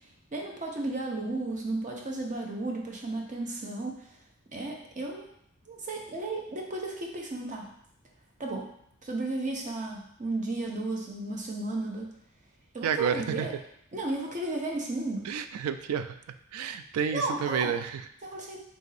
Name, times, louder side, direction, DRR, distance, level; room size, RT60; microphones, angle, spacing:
voice 1, 0.3-4.1 4.5-5.3 5.7-7.7 8.4-8.7 9.0-12.1 12.7-13.5 13.9-15.3 17.1-17.8 18.2-18.6, right 2 dB, 35° right, 0 dB, 0.7 m, -34 dB
voice 2, 12.8-13.5 15.2-16.1 16.5-18.0, right 7 dB, 85° right, 10 dB, 0.3 m, -30 dB
3.8 x 2.6 x 4.0 m, 0.70 s
head